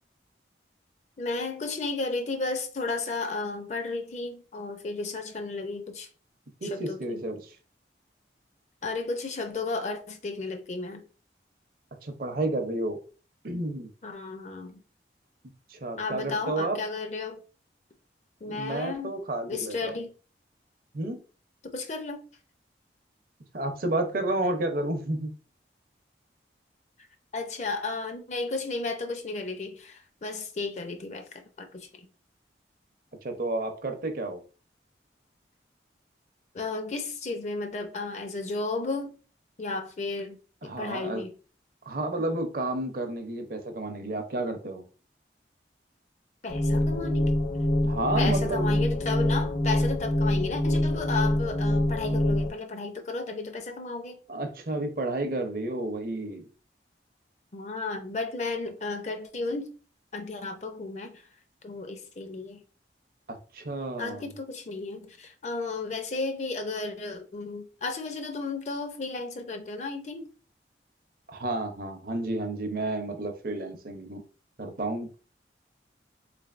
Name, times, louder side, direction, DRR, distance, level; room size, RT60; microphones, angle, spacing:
voice 1, 1.2-6.1 6.6-7.2 8.8-11.1 14.0-14.8 16.0-17.4 18.4-19.1 19.5-20.1 21.7-22.2 27.3-32.1 36.5-39.1 39.6-41.3 46.4-47.3 48.2-54.2 57.5-59.7 60.1-61.2 61.6-62.6 64.0-70.3, left 3 dB, 40° left, 0.5 m, -33 dB
voice 2, 6.6-7.6 12.0-13.0 13.4-13.9 15.7-16.8 18.4-20.0 20.9-21.2 23.5-25.4 33.2-34.4 40.6-41.2 41.9-44.8 47.8-48.8 54.3-56.5 63.3-64.3 71.3-74.2 74.6-75.1, right 2 dB, 50° right, 0.6 m, -31 dB
sound 1, 46.5-52.5, left 1 dB, 85° left, 1.0 m, -25 dB
3.5 x 3.3 x 2.4 m
head